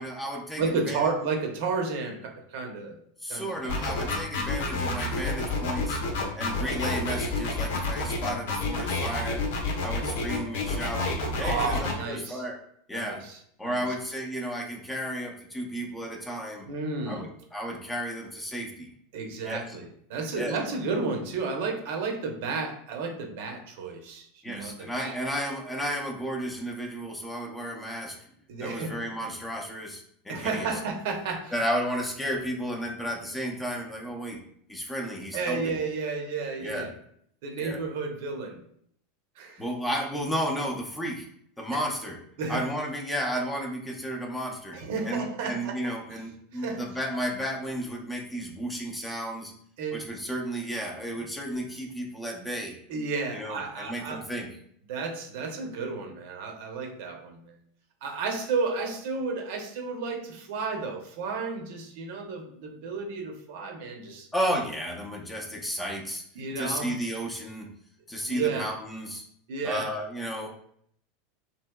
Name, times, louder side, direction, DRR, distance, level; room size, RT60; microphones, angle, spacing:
voice 1, 0.0-1.0 3.2-6.0 6.4-9.4 9.8-11.0 11.4-12.6 12.9-13.2 13.6-16.7 17.1-18.9 19.4-19.6 20.4-20.5 24.4-28.2 28.6-30.7 31.5-34.4 34.7-35.8 36.6-36.9 37.6-37.8 39.6-41.3 41.6-42.2 42.5-44.8 45.1-49.5 49.9-52.7 53.3-54.5 64.3-66.2 66.6-67.7 68.1-69.2 69.6-70.5, equal, 10° left, 1 dB, 0.5 m, -33 dB
voice 2, 0.6-3.0 3.3-3.8 11.4-12.4 12.9-13.4 13.6-13.8 16.7-17.3 19.1-25.2 28.5-28.9 30.3-31.5 35.3-36.9 37.4-38.6 39.4-39.6 41.7-41.8 42.4-42.6 44.7-45.8 46.1-46.2 46.5-46.8 49.8-50.0 52.9-54.2 54.9-57.5 58.0-64.3 66.4-66.9 68.3-68.7 69.5-69.9, right 4 dB, 70° right, 3 dB, 0.7 m, -32 dB
sound 1, 3.7-11.9, left 3 dB, 80° left, 0.8 m, -29 dB
3.2 x 2.7 x 2.2 m, 0.67 s
supercardioid pair, 130°, 0 cm